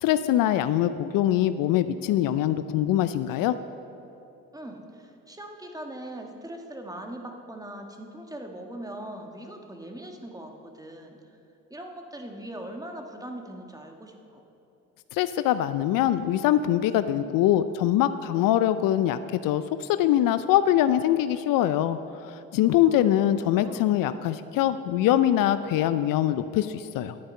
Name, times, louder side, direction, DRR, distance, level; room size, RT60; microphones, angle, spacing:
voice 1, 0.0-3.5 15.1-27.2, left 12 dB, 65° left, 12 dB, 0.5 m, -23 dB
voice 2, 4.5-11.2 11.7-14.4 22.8-23.1 23.5-23.9, right 1 dB, 10° right, 3 dB, 1.4 m, -40 dB
11.0 x 8.7 x 5.4 m, 2.9 s
supercardioid pair, 65°, 36 cm